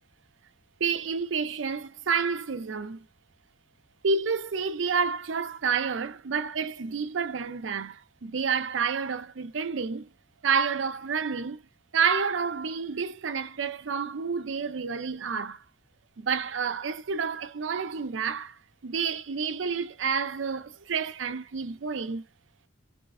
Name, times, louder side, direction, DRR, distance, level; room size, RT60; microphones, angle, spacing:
voice 1, 0.8-3.0 4.0-10.1 10.4-11.6 11.9-15.6 16.2-22.2, right 5 dB, 80° right, 0.5 m, -29 dB
3.2 x 3.2 x 3.6 m
head